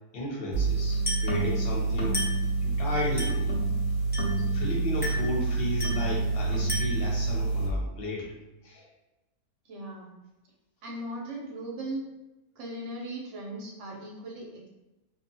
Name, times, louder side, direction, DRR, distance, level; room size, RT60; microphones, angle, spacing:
voice 1, 0.1-2.2 2.6-3.5 4.4-8.3 8.6-8.9, left 1 dB, 50° left, -3 dB, 0.8 m, -34 dB
sound 1, 0.5-7.7, right 3 dB, 90° left, 1.2 m, -27 dB
Glass, 1.1-1.4 2.1-2.5 3.2-3.5 4.1-4.5 5.0-5.4 5.8-6.1 6.7-7.1, left 1 dB, 15° left, 0.3 m, -34 dB
voice 2, 9.6-10.1 10.8-12.0 12.6-14.7, right 1 dB, 65° right, -2 dB, 0.8 m, -38 dB
2.5 x 2.3 x 2.6 m, 1.0 s
omnidirectional pair, 1.6 m